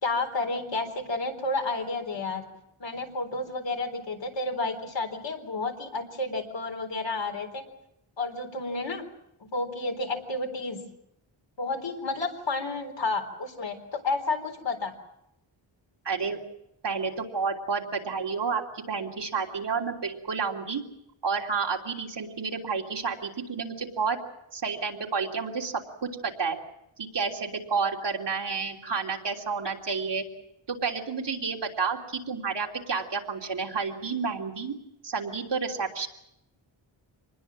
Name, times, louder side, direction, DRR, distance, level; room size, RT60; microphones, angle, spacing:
voice 1, 0.0-2.4 2.8-7.6 8.2-9.0 9.4-10.8 11.6-14.9, left 3 dB, 60° left, 4 dB, 4.1 m, -31 dB
voice 2, 16.0-16.4 16.8-20.8 21.2-24.2 24.5-25.7 26.0-26.6 27.0-30.2 30.7-34.8 35.0-36.1, right 5 dB, 60° right, 0 dB, 3.3 m, -30 dB
26.5 x 20.5 x 7.5 m, 0.81 s
wide cardioid pair, 175°, 48 cm